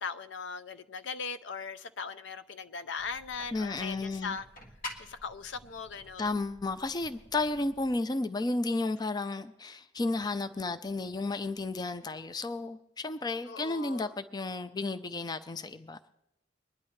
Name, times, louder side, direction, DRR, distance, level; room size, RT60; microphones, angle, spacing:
voice 1, 0.0-4.5 5.0-6.4 13.5-14.1, left 5 dB, 70° left, 0.6 m, -39 dB
sound 1, 3.0-8.0, left 2 dB, 50° left, 1.5 m, -49 dB
voice 2, 3.5-4.4 6.2-16.0, left 2 dB, 20° left, 0.4 m, -33 dB
24.0 x 10.5 x 3.2 m
head